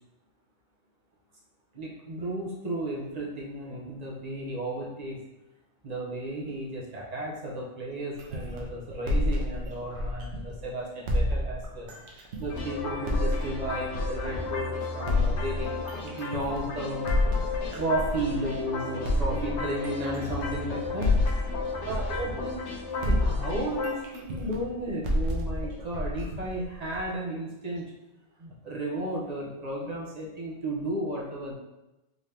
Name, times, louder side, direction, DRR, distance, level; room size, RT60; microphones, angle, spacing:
voice 1, 1.7-5.2 5.8-11.9 12.4-17.1 17.7-21.2 21.9-27.9 28.4-31.5, right 1 dB, 40° right, -4 dB, 0.8 m, -34 dB
sound 1, 8.2-10.6 11.1-14.6 15.1-18.6 19.0-22.7 23.0-27.1, left 1 dB, 80° right, 1.0 m, -29 dB
sound 2, 12.5-23.9, left 4 dB, 80° left, 1.1 m, -35 dB
3.8 x 2.8 x 3.3 m, 0.99 s
omnidirectional pair, 1.2 m